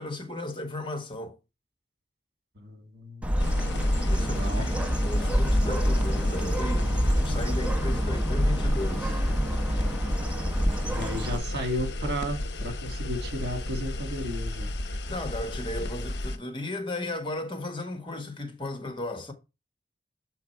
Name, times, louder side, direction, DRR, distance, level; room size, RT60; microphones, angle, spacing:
voice 1, 0.0-1.4 4.0-9.2 15.1-19.3, left 1 dB, 30° left, 1.3 m, -35 dB
voice 2, 2.6-3.4 4.2-4.7 10.9-14.7, equal, 65° right, 2.1 m, -34 dB
Bird, 3.2-11.4, equal, 10° right, 0.8 m, -27 dB
sound 1, 3.4-16.4, left 1 dB, 70° left, 0.7 m, -31 dB
7.1 x 4.7 x 4.4 m
head